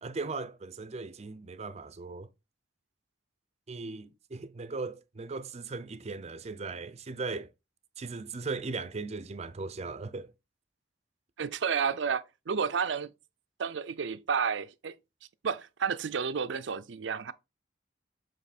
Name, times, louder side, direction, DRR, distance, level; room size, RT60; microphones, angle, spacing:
voice 1, 0.0-2.3 3.7-7.5 8.0-10.3, right 3 dB, 35° right, 0.5 m, -38 dB
voice 2, 11.4-13.1 13.6-15.0 15.4-17.3, right 6 dB, 85° right, 0.5 m, -31 dB
7.3 x 3.1 x 4.2 m
head